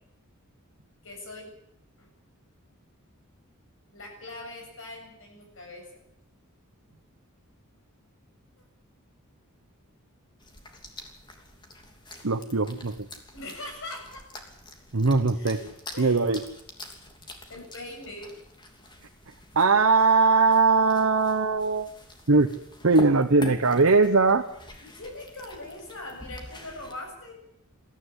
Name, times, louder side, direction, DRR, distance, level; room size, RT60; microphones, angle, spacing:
voice 1, 1.0-1.5 2.0-2.1 3.9-6.1 8.6-8.7 13.3-14.3 15.3-15.6 15.9-16.2 17.2-18.3 24.8-27.4, left 2 dB, 65° left, 2 dB, 7.4 m, -41 dB
sound 1, 10.4-26.9, left 1 dB, 20° left, 3.0 m, -45 dB
voice 2, 12.2-12.9 14.9-15.6 16.0-16.4 19.5-21.9 22.3-22.5 22.8-24.4, right 4 dB, 65° right, 5 dB, 1.0 m, -20 dB
22.0 x 14.0 x 9.9 m, 0.78 s
head